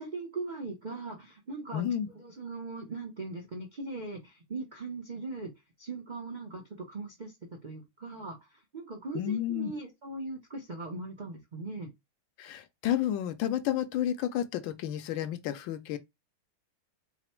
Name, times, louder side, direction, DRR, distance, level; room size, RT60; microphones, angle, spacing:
voice 1, 0.0-5.5 5.8-7.3 7.6-8.4 8.7-11.9, right 3 dB, 70° right, 0.4 m, -39 dB
voice 2, 1.7-2.1 9.1-9.7 12.4-16.0, left 11 dB, 75° left, 1.2 m, -31 dB
4.0 x 2.1 x 4.3 m
omnidirectional pair, 2.3 m